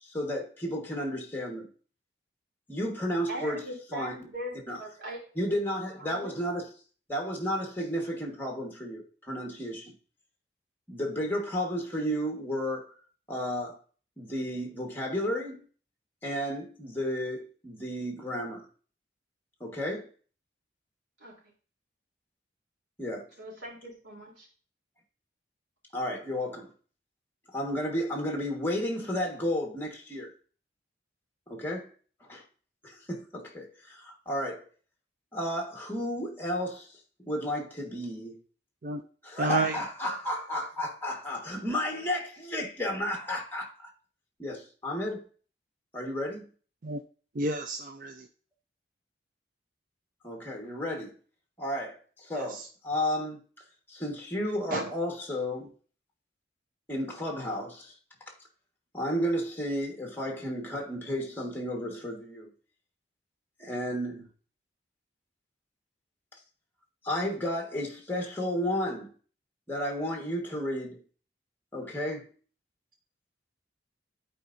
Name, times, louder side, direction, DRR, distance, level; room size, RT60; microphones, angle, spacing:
voice 1, 0.0-1.7 2.7-3.6 3.9-4.3 4.7-4.8 5.4-6.7 7.1-9.9 10.9-12.9 13.3-13.8 14.2-15.6 16.2-18.6 19.6-20.1 23.0-23.3 25.9-26.7 27.5-30.3 31.5-31.9 32.3-32.4 32.8-34.6 35.3-36.9 37.2-38.4 39.2-43.9 44.4-45.2 45.9-46.5 50.2-51.1 51.6-53.4 53.9-55.7 56.9-57.9 58.9-62.5 63.6-64.3 67.0-69.1 69.7-71.0 71.7-72.3, equal, 10° left, 1.4 m, -32 dB
voice 2, 3.3-4.5 4.8-5.2 6.0-6.3 21.2-21.3 23.4-24.5, equal, 80° right, 3.3 m, -40 dB
voice 3, 39.4-39.8 46.8-47.0 47.4-48.2 54.7-54.9, right 3 dB, 45° right, 0.5 m, -30 dB
11.5 x 4.5 x 2.6 m
head